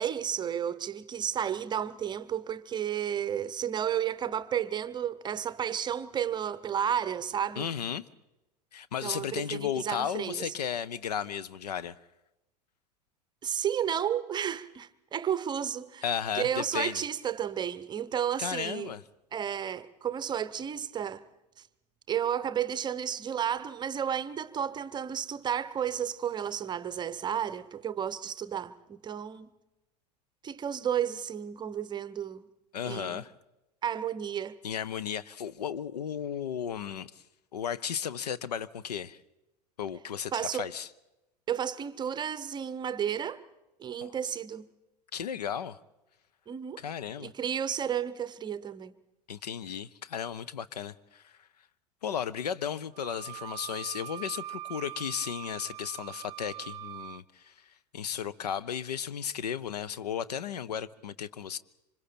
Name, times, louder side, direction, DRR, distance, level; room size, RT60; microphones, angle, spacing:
voice 1, 0.0-7.7 9.0-10.5 13.4-16.0 16.3-18.9 19.3-21.2 22.1-29.5 30.4-32.5 32.8-33.2 33.8-34.6 40.3-40.7 41.5-43.4 43.8-44.7 46.5-46.8 47.2-48.9, right 9 dB, 20° right, 0.8 m, -32 dB
voice 2, 7.6-8.0 8.7-11.9 16.0-17.0 18.4-19.0 32.7-33.3 34.6-37.1 37.5-39.2 39.8-40.9 44.0-44.2 45.1-45.8 46.8-47.3 49.3-51.3 52.0-57.5 57.9-61.6, left 8 dB, 70° left, 0.7 m, -34 dB
Wind instrument woodwind instrument, 52.9-57.2, right 14 dB, 55° right, 0.7 m, -42 dB
26.5 x 25.0 x 4.4 m
figure-of-eight pair, 85°, 21 cm